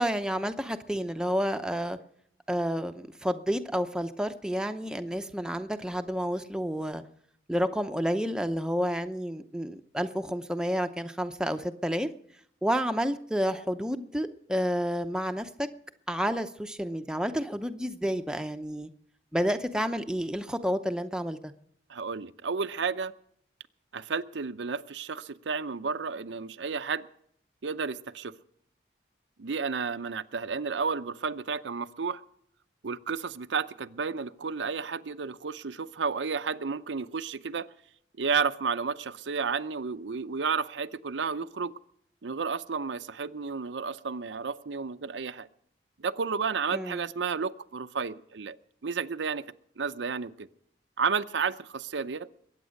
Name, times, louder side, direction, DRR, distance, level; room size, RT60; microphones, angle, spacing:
voice 1, 0.0-2.0 2.5-7.0 7.5-12.1 12.6-15.7 16.1-18.9 19.3-21.5 46.7-47.0, equal, 5° right, 7 dB, 0.7 m, -30 dB
voice 2, 21.9-23.1 23.9-27.1 27.6-28.3 29.4-32.2 32.8-37.7 38.2-41.7 42.2-45.5 46.0-48.6 48.8-49.5 49.8-50.5 51.0-52.3, right 5 dB, 90° right, 12 dB, 0.6 m, -32 dB
22.0 x 8.9 x 6.4 m, 0.69 s
head